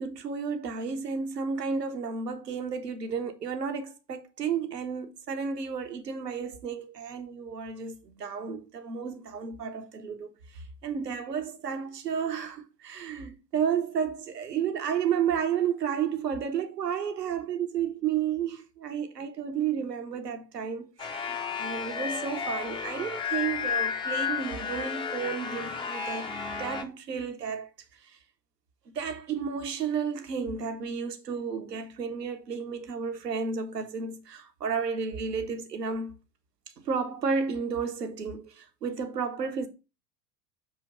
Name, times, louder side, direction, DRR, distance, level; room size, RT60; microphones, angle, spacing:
voice 1, 0.0-28.1 28.9-36.2 36.8-39.7, right 6 dB, 75° right, 1.0 m, -32 dB
sound 1, 21.0-26.8, left 6 dB, 10° left, 0.5 m, -32 dB
6.7 x 2.9 x 4.9 m
figure-of-eight pair, 80°, 49 cm